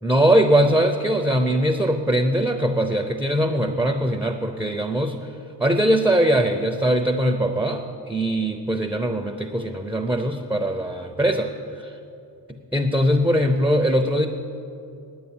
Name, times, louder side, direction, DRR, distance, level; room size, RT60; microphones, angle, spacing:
voice 1, 0.0-5.2 5.6-11.9 12.7-14.3, right 1 dB, 5° right, 5 dB, 0.6 m, -21 dB
10.0 x 8.8 x 8.7 m, 2.7 s
wide cardioid pair, 115°, 44 cm